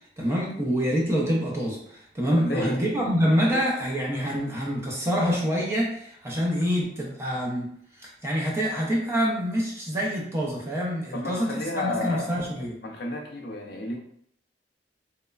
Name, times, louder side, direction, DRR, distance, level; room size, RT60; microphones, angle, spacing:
voice 1, 0.2-12.8, equal, 15° right, -4 dB, 0.5 m, -26 dB
voice 2, 2.4-3.6 11.1-12.3 12.8-14.0, left 2 dB, 55° left, 2 dB, 0.5 m, -32 dB
3.0 x 2.1 x 2.3 m, 0.70 s
head